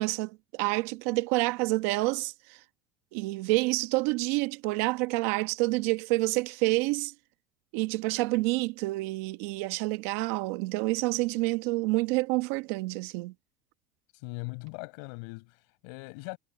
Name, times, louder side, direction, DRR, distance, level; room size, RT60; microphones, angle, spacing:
voice 1, 0.0-2.6 3.1-7.1 7.7-13.3, right 22 dB, 75° right, 1.2 m, -28 dB
voice 2, 14.1-16.4, left 32 dB, 75° left, 6.4 m, -40 dB
cardioid pair, 160°, 8 cm